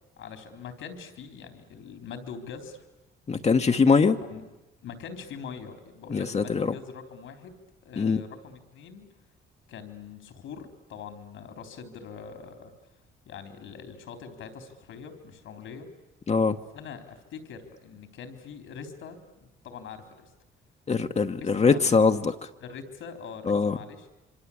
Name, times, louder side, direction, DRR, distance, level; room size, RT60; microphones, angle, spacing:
voice 1, 0.2-2.8 4.0-4.4 4.8-9.1 9.7-12.7 13.3-15.9 16.7-20.3 21.4-22.0 22.6-24.1, left 6 dB, 80° left, 7 dB, 3.7 m, -43 dB
voice 2, 3.3-4.2 6.1-6.7 8.0-8.2 16.3-16.6 20.9-22.3 23.5-23.8, left 5 dB, 35° left, 6 dB, 1.2 m, -22 dB
26.5 x 24.5 x 8.6 m, 1.1 s
cardioid pair, 90°, 20 cm